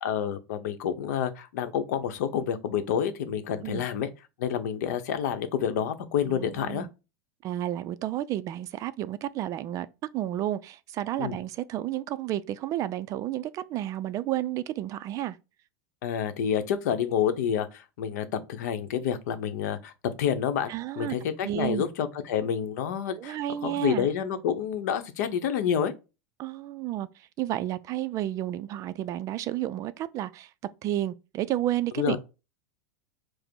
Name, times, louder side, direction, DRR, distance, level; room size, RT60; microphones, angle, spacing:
voice 1, 0.0-4.1 4.4-6.9 11.2-11.4 16.0-25.9 32.0-32.2, left 8 dB, 75° left, 0.7 m, -28 dB
voice 2, 6.3-6.9 7.4-9.9 10.1-15.4 20.7-21.2 21.4-21.9 23.2-24.1 26.4-30.5 30.8-32.2, right 13 dB, 35° right, 0.3 m, -31 dB
5.0 x 2.0 x 4.5 m
supercardioid pair, 130°, 9 cm